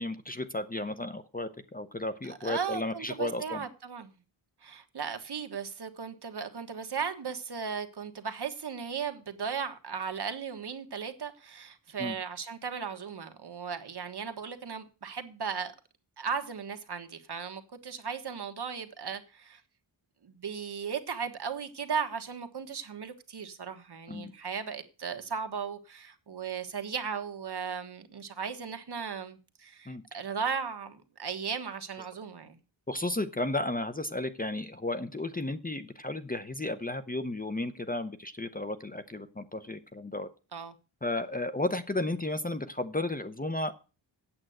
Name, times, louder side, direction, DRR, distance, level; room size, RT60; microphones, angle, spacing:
voice 1, 0.0-3.6 12.0-12.2 24.1-24.3 29.9-30.0 32.9-40.3 41.0-43.7, left 2 dB, 20° left, 0.7 m, -33 dB
voice 2, 2.2-4.1 4.6-15.7 16.2-19.6 20.2-32.6 40.5-40.7, right 6 dB, 55° right, 1.5 m, -36 dB
8.8 x 7.7 x 7.8 m
wide cardioid pair, 110°, 46 cm